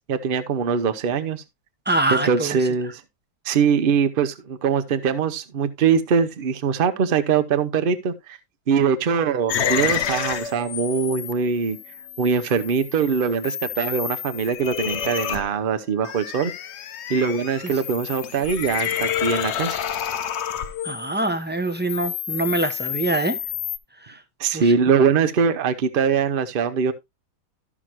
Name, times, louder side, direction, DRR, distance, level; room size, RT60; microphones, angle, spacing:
voice 1, 0.0-1.4 2.1-2.9 3.4-8.4 8.7-11.8 12.2-16.5 17.1-19.8 24.4-26.9, right 6 dB, 45° right, 0.8 m, -22 dB
voice 2, 1.9-2.5 17.6-17.7 20.8-23.4 24.0-24.2 24.5-24.7, right 2 dB, 10° right, 0.4 m, -24 dB
sound 1, 9.5-21.3 21.5-23.8, left 9 dB, 60° left, 0.7 m, -29 dB
13.0 x 6.1 x 2.9 m
omnidirectional pair, 1.8 m